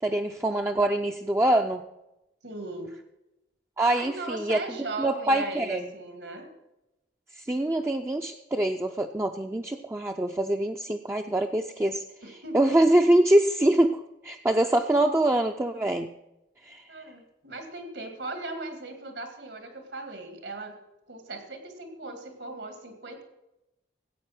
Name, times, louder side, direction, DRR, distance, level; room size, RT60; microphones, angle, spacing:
voice 1, 0.0-1.8 3.8-4.6 5.0-5.8 7.3-12.0 12.3-16.1 16.6-16.9, right 1 dB, 15° right, 4 dB, 0.4 m, -24 dB
voice 2, 2.4-2.9 4.0-6.5 12.2-12.8 16.9-20.8 21.1-23.2, right 2 dB, 80° right, 6 dB, 2.2 m, -38 dB
14.5 x 8.4 x 5.9 m, 0.91 s
head